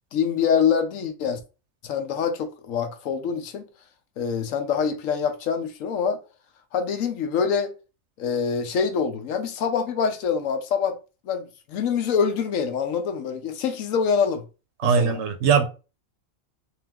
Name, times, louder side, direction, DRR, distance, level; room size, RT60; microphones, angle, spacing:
voice 1, 0.1-1.4 1.8-3.6 4.2-6.2 6.7-7.7 8.2-11.0 11.3-14.4 14.8-15.2, left 6 dB, 80° left, 1.1 m, -25 dB
voice 2, 14.8-15.6, right 6 dB, 65° right, 0.8 m, -20 dB
3.5 x 2.9 x 3.4 m
omnidirectional pair, 1.4 m